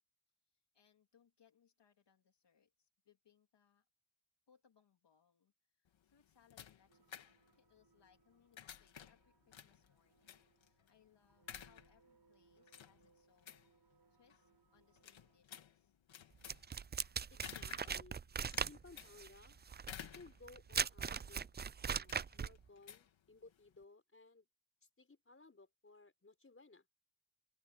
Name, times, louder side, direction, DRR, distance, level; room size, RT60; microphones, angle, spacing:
voice 1, 0.5-3.9 4.5-16.0, left 8 dB, 65° left, 2.9 m, -73 dB
sound 1, 5.9-23.8, left 9 dB, 80° left, 2.2 m, -56 dB
sound 2, 6.9-15.4, right 6 dB, 55° right, 6.9 m, -74 dB
sound 3, 16.5-22.6, right 6 dB, 25° right, 0.4 m, -40 dB
voice 2, 17.3-18.2 18.6-19.6 20.1-21.5 21.9-24.5 25.0-26.9, left 3 dB, 30° left, 4.8 m, -60 dB
open air
cardioid pair, 70°, 45 cm